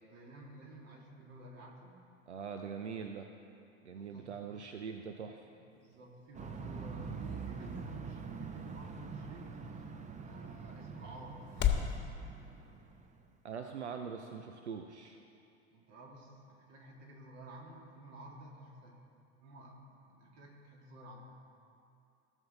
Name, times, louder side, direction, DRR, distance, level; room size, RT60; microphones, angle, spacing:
voice 1, 0.0-2.0 3.9-4.3 5.4-9.5 10.2-11.8 15.7-19.0 19.4-19.8 20.0-21.3, right 1 dB, 50° right, -2 dB, 2.6 m, -52 dB
voice 2, 2.3-3.3 3.8-5.5 13.4-15.2, right 6 dB, 90° right, 5 dB, 0.6 m, -42 dB
sound 1, 5.7-12.0, left 9 dB, 30° left, 1.2 m, -40 dB
sound 2, 6.3-13.2, right 5 dB, 20° right, 0.8 m, -44 dB
18.0 x 6.4 x 3.9 m, 2.5 s
hypercardioid pair, 80°, 33 cm